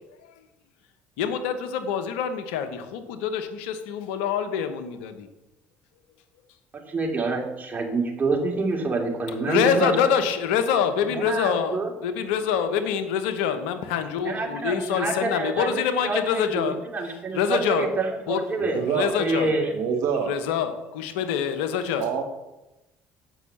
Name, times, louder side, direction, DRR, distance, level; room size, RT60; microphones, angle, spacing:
voice 1, 1.2-5.3 9.5-16.8 17.3-17.9 18.3-19.5 20.2-22.1, left 7 dB, 80° left, 9 dB, 0.9 m, -26 dB
voice 2, 6.7-10.1 11.1-11.9 14.2-18.8 19.2-19.7, right 3 dB, 30° right, 0 dB, 2.7 m, -27 dB
voice 3, 18.6-19.2 19.7-20.3 22.0-22.2, right 6 dB, 70° right, 4 dB, 1.5 m, -26 dB
8.1 x 5.5 x 7.1 m, 0.98 s
hypercardioid pair, 60°, 6 cm